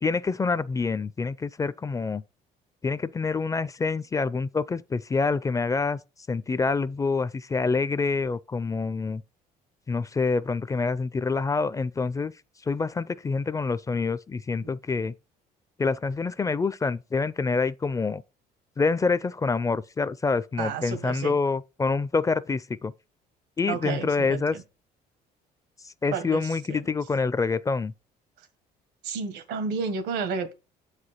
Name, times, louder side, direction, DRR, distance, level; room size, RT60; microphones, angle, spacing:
voice 1, 0.0-2.2 2.8-6.0 6.3-9.2 9.9-12.3 12.6-15.1 15.8-18.2 18.8-22.9 23.6-24.6 25.8-27.9, left 4 dB, 20° left, 0.4 m, -26 dB
voice 2, 20.6-21.3 23.7-24.6 26.1-26.4 26.7-26.8 29.0-30.5, right 5 dB, 85° right, 1.6 m, -31 dB
7.9 x 4.9 x 4.3 m
cardioid pair, 110°, 17 cm